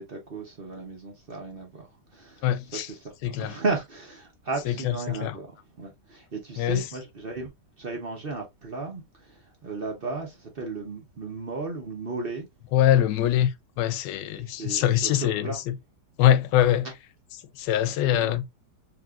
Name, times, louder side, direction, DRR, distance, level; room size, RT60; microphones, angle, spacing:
voice 1, 0.0-2.4 3.2-7.5 7.8-12.5 14.5-15.6 18.1-18.4, right 3 dB, 40° right, 0.9 m, -35 dB
voice 2, 2.4-2.9 3.2-3.6 4.7-5.4 6.6-6.9 12.7-15.7 16.2-16.9 17.6-18.4, left 11 dB, 90° left, 1.2 m, -23 dB
5.2 x 2.9 x 2.3 m
omnidirectional pair, 1.9 m